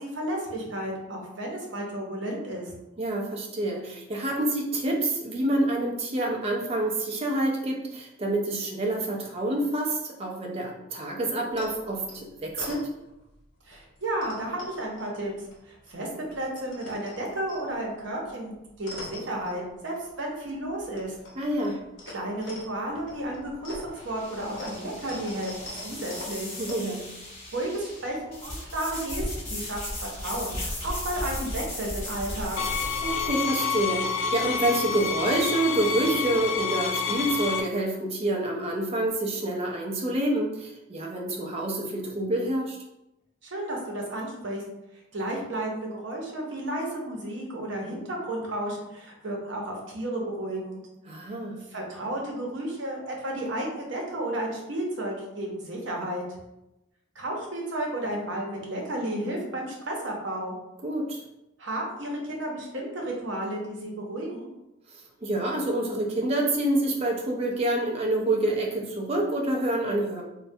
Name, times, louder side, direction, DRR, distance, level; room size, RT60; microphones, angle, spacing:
voice 1, 0.0-2.7 13.7-15.3 15.7-21.1 22.1-26.5 27.5-32.6 43.4-44.6 45.1-50.8 51.7-56.2 57.2-60.6 61.6-64.5, right 1 dB, 70° right, -1 dB, 0.7 m, -32 dB
voice 2, 3.0-12.8 21.4-21.8 26.6-27.1 33.0-42.8 51.1-51.6 60.8-61.2 64.9-70.2, right 1 dB, 30° right, 0 dB, 0.4 m, -27 dB
sound 1, 11.5-13.4 13.7-15.9 16.2-20.2 20.4-26.7, left 1 dB, 65° left, 0.8 m, -44 dB
sound 2, 22.9-33.3, left 1 dB, 35° left, 1.0 m, -36 dB
sound 3, 32.6-37.6, left 6 dB, 80° left, 0.3 m, -28 dB
3.2 x 2.1 x 2.6 m, 0.91 s
head